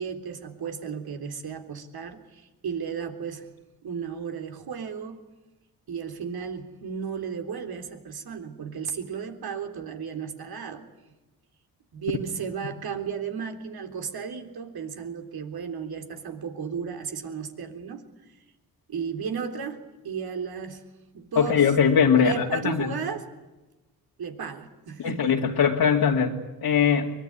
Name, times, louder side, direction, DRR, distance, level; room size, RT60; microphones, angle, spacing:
voice 1, 0.0-3.5 3.8-5.2 5.9-10.9 11.9-18.4 18.9-20.9 21.1-21.8 22.2-23.3 24.2-25.4, right 6 dB, 65° right, 6 dB, 3.7 m, -34 dB
voice 2, 21.4-22.9 25.0-27.1, left 7 dB, 70° left, -2 dB, 2.7 m, -21 dB
23.5 x 21.5 x 9.9 m, 1.1 s
cardioid pair, 65°, 39 cm